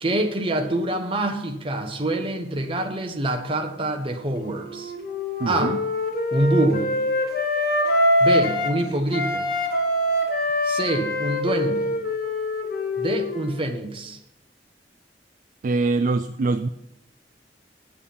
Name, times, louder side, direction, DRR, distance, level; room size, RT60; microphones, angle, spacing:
voice 1, 0.0-4.9 5.5-5.8 6.3-6.9 8.2-9.5 10.6-11.9 13.0-14.2, right 1 dB, 30° right, 4 dB, 1.1 m, -25 dB
Wind instrument woodwind instrument, 4.4-8.8 9.1-13.6, left 1 dB, 55° left, 1.5 m, -24 dB
voice 2, 5.4-5.8 15.6-16.7, right 3 dB, 50° right, 12 dB, 0.3 m, -23 dB
8.6 x 8.3 x 5.5 m, 0.88 s
head